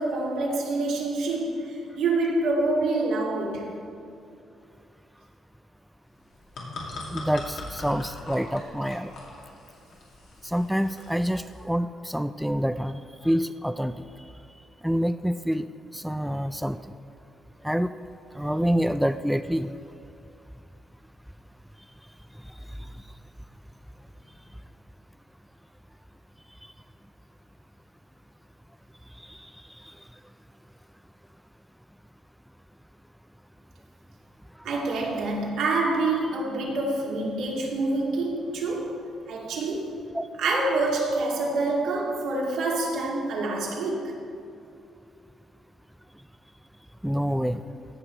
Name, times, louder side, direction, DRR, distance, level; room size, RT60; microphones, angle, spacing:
voice 1, 0.0-3.8 34.6-39.0 39.3-39.9 40.4-44.1, right 2 dB, 80° right, -2 dB, 2.2 m, -26 dB
sound 1, 6.2-11.6, left 2 dB, 75° left, 2.4 m, -41 dB
voice 2, 7.1-9.1 10.4-14.1 14.8-15.7 15.9-16.8 17.6-17.9 18.3-19.7 29.3-29.5 40.1-40.2 47.0-47.6, equal, ahead, 10 dB, 0.3 m, -27 dB
16.0 x 5.9 x 4.5 m, 2.5 s
cardioid pair, 90°, 0 cm